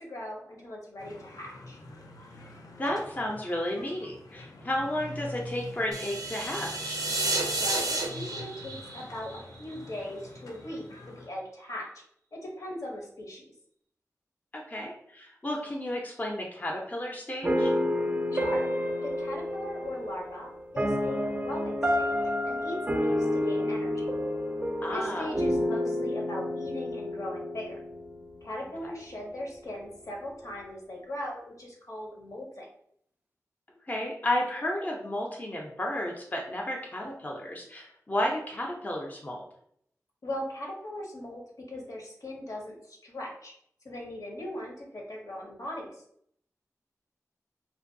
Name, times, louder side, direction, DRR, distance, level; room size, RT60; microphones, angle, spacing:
voice 1, 0.0-1.8 7.6-11.9 12.3-13.4 18.3-18.6 19.0-24.1 24.9-27.8 28.4-32.7 40.2-41.4 41.7-43.5 43.8-45.9, left 1 dB, 65° left, -1 dB, 0.7 m, -39 dB
sound 1, 1.0-11.3, left 1 dB, 90° left, 0.4 m, -46 dB
voice 2, 2.8-7.0 14.5-17.7 24.8-25.3 28.8-28.9 33.9-39.4, left 1 dB, 25° left, 0 dB, 0.5 m, -32 dB
sound 2, 5.9-10.0, right 2 dB, 90° right, 0.4 m, -31 dB
sound 3, 17.4-28.5, left 1 dB, 25° right, 0.4 m, -29 dB
2.5 x 2.2 x 2.6 m, 0.69 s
wide cardioid pair, 65°, 6 cm